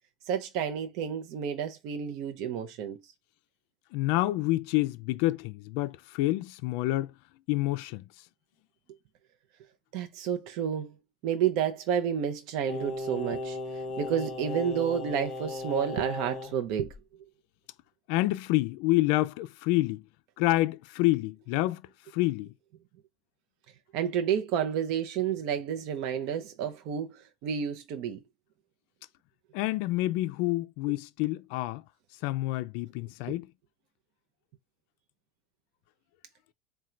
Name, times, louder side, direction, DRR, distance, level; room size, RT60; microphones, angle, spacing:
voice 1, 0.3-3.1 9.9-10.9 11.2-16.9 23.9-28.2 33.3-33.4, right 8 dB, 65° right, 0.6 m, -30 dB
voice 2, 3.9-7.1 7.5-8.0 18.1-20.0 20.4-21.8 22.1-22.5 29.5-31.8 32.2-33.5, left 18 dB, 70° left, 0.3 m, -28 dB
Singing, 12.7-16.5 16.9-17.0, left 2 dB, 30° left, 1.0 m, -36 dB
3.7 x 2.2 x 4.4 m
supercardioid pair, 125°, 0 cm